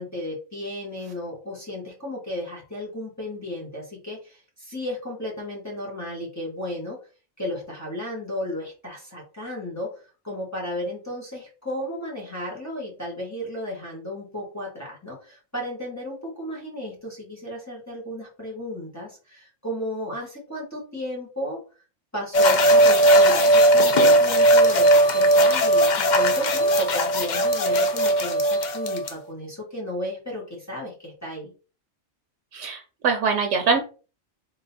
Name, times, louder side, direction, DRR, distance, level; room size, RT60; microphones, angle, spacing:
voice 1, 0.0-7.0 7.4-9.9 10.2-21.6 22.1-31.5, left 1 dB, 15° left, -4 dB, 1.5 m, -34 dB
sound 1, 22.3-29.1, right 1 dB, 50° left, 0.6 m, -18 dB
voice 2, 32.5-33.8, right 5 dB, 85° right, 3 dB, 1.0 m, -23 dB
3.8 x 2.8 x 4.1 m, 0.34 s
omnidirectional pair, 1.2 m